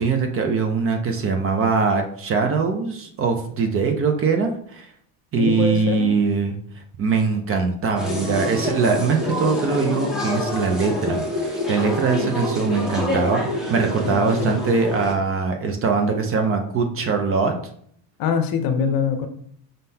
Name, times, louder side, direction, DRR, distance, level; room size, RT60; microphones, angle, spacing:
voice 1, 0.0-4.9 5.3-6.6 7.0-17.6, right 4 dB, 35° right, 5 dB, 0.5 m, -22 dB
voice 2, 5.4-6.1 14.0-14.6 18.2-19.3, left 6 dB, 55° left, 8 dB, 0.7 m, -24 dB
sound 1, 8.0-15.1, left 1 dB, ahead, 0.9 m, -27 dB
5.2 x 3.7 x 2.7 m, 0.63 s
cardioid pair, 155°, 43 cm